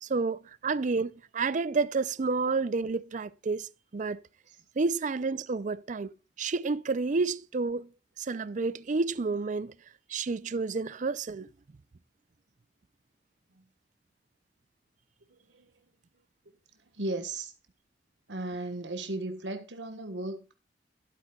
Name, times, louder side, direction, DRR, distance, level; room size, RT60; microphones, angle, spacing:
voice 1, 0.0-4.2 4.8-7.9 8.2-9.7 10.1-11.5, right 4 dB, 45° right, 0.5 m, -30 dB
voice 2, 15.3-15.7 16.9-17.5 18.3-20.5, right 2 dB, 85° right, 1.4 m, -36 dB
12.5 x 12.0 x 2.3 m
head